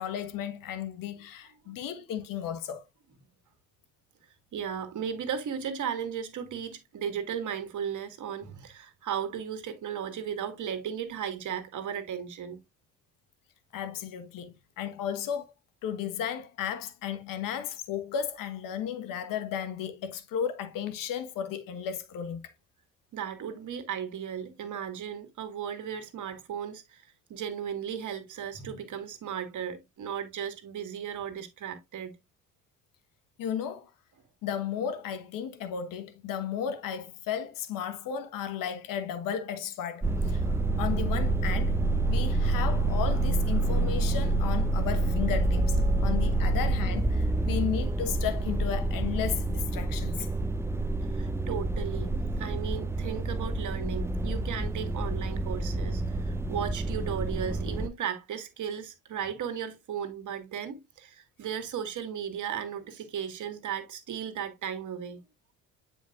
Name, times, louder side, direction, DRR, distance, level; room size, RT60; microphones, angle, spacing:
voice 1, 0.0-2.8 13.7-15.4 15.8-22.5 33.4-33.9 34.4-41.8 42.1-50.3, left 8 dB, 65° left, 1.3 m, -34 dB
voice 2, 4.5-12.6 23.1-32.1 51.1-65.2, right 8 dB, 55° right, 1.9 m, -36 dB
sound 1, 40.0-57.9, right 2 dB, 5° right, 0.5 m, -28 dB
9.4 x 5.1 x 2.5 m
supercardioid pair, 70°, 35 cm